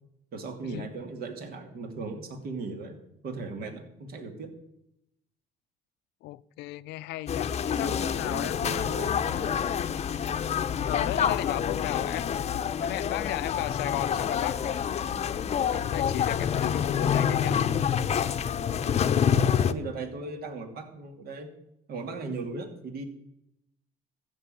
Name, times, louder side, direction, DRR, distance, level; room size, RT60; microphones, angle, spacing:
voice 1, 0.3-3.0 3.2-4.5 7.7-9.7 18.8-19.0 19.3-21.5 21.9-23.1, right 3 dB, 65° right, 2.5 m, -38 dB
voice 2, 6.2-8.9 10.8-12.5 12.8-14.9 15.7-17.6, left 17 dB, 85° left, 0.5 m, -35 dB
sound 1, 7.3-19.7, left 8 dB, 40° left, 0.7 m, -27 dB
14.5 x 6.3 x 9.0 m
cardioid pair, 110°, 17 cm